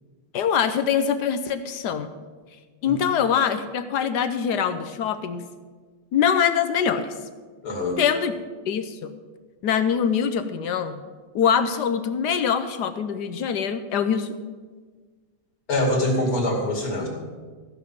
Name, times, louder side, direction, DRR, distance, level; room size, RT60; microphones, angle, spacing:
voice 1, 0.3-2.1 2.8-5.4 6.1-7.1 8.0-8.3 8.7-9.1 9.6-11.0 11.3-14.3, left 7 dB, 65° left, 9 dB, 1.1 m, -23 dB
voice 2, 7.6-8.0 15.7-17.1, left 1 dB, 45° left, 0 dB, 2.8 m, -24 dB
14.5 x 6.0 x 7.1 m, 1.4 s
omnidirectional pair, 2.2 m